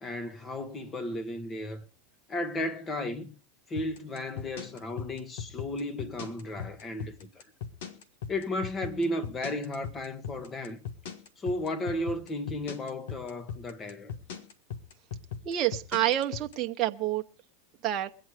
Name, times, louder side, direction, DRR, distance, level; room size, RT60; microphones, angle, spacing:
voice 1, 0.0-1.8 2.3-3.4 3.7-7.4 8.3-10.8 11.4-14.1, left 1 dB, 25° left, 1.5 m, -34 dB
sound 1, 3.8-16.5, left 7 dB, 75° left, 1.4 m, -38 dB
voice 2, 15.4-17.2 17.8-18.1, right 13 dB, 40° right, 0.9 m, -28 dB
22.0 x 8.6 x 5.0 m
hypercardioid pair, 110°, 0 cm